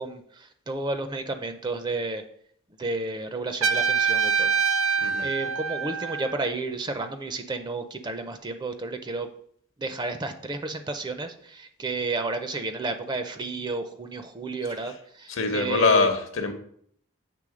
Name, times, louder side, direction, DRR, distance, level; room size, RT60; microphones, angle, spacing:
voice 1, 0.0-2.2 2.8-4.5 4.8-9.3 9.8-16.1, right 3 dB, 20° right, 8 dB, 0.4 m, -32 dB
Trumpet, 3.6-6.5, right 6 dB, 65° right, 0.7 m, -25 dB
voice 2, 15.3-16.5, left 4 dB, 65° left, 6 dB, 0.8 m, -23 dB
7.6 x 3.4 x 4.9 m, 0.64 s
head